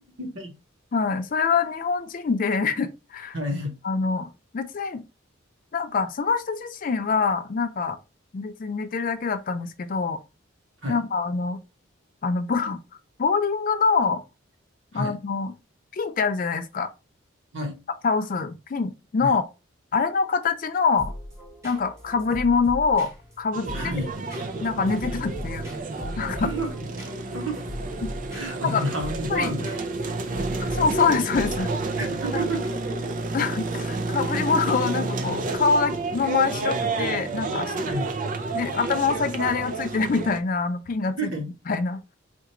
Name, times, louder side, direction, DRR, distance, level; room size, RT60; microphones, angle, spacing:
voice 1, 0.2-0.5 3.3-3.7 10.8-11.0 14.9-15.2 17.5-17.8 19.2-19.4 23.7-24.1 26.4-26.7 27.3-27.7 28.3-30.7 32.0-32.8 37.8-38.1 41.0-41.5, right 1 dB, 65° right, 1.0 m, -31 dB
voice 2, 0.9-3.4 3.8-4.3 4.5-5.0 5.7-8.0 8.3-10.2 10.9-11.6 12.2-12.8 13.2-14.2 14.9-15.5 15.9-16.9 18.0-19.4 19.9-21.1 21.6-23.1 23.4-23.9 24.6-25.7 26.2-26.5 28.0-28.1 28.6-28.8 29.3-29.5 30.6-31.7 33.3-37.7 38.5-41.3 41.7-42.0, left 5 dB, 40° left, 0.4 m, -25 dB
sound 1, 21.0-31.8, left 1 dB, 15° right, 1.0 m, -39 dB
sound 2, 23.5-40.4, right 3 dB, 40° right, 0.4 m, -30 dB
4.3 x 2.4 x 2.9 m
head